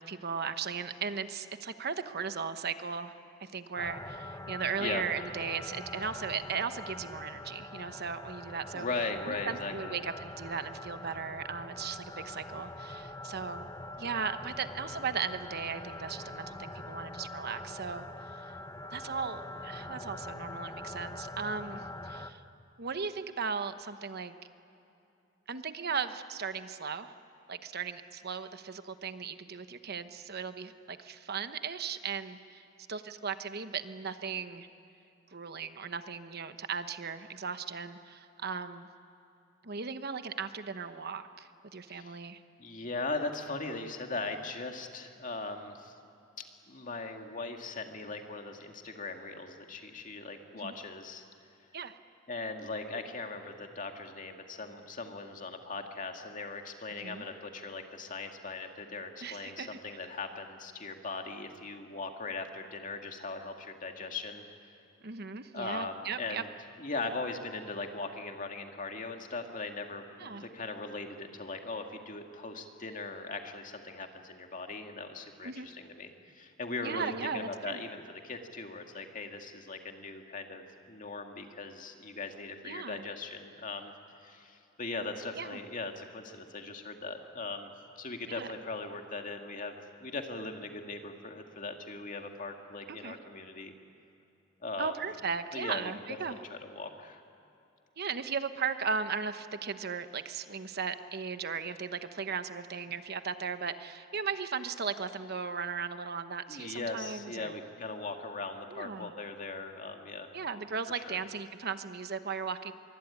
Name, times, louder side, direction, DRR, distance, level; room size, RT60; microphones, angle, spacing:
voice 1, 0.0-8.9 9.3-13.7 14.0-18.5 18.9-22.4 22.8-24.3 25.5-27.1 27.5-32.6 32.9-34.7 35.3-38.9 39.6-42.4 50.5-50.7 51.7-51.9 57.0-57.2 59.2-59.8 65.0-66.4 70.2-70.4 75.4-75.7 76.8-77.8 82.6-83.0 85.4-85.6 88.3-88.5 92.9-93.2 94.8-96.4 98.0-107.5 108.7-109.1 110.3-112.7, right 6 dB, 55° right, 10 dB, 1.0 m, -37 dB
sound 1, 3.8-22.3, left 2 dB, 20° left, 1.1 m, -44 dB
voice 2, 8.7-10.0 41.9-42.2 42.6-45.9 46.4-51.2 52.3-64.4 65.5-66.5 66.8-83.9 84.2-87.7 88.0-93.7 94.6-95.0 95.5-97.2 106.5-110.4 110.9-111.2, left 3 dB, 40° left, 4 dB, 2.2 m, -39 dB
25.0 x 23.5 x 9.8 m, 2.7 s
head